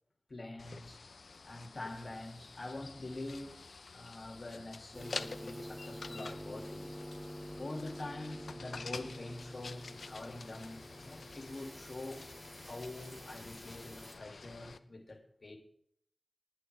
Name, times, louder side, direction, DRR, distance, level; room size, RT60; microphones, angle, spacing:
voice 1, 0.3-1.0 1.4-3.6 3.9-6.9 7.6-12.3 12.6-15.6, left 2 dB, 55° left, 2.4 m, -45 dB
sound 1, 0.6-14.8, left 4 dB, 85° left, 0.6 m, -49 dB
sound 2, 4.9-14.1, equal, 20° right, 4.9 m, -48 dB
20.0 x 8.7 x 3.4 m
wide cardioid pair, 70°, 0 cm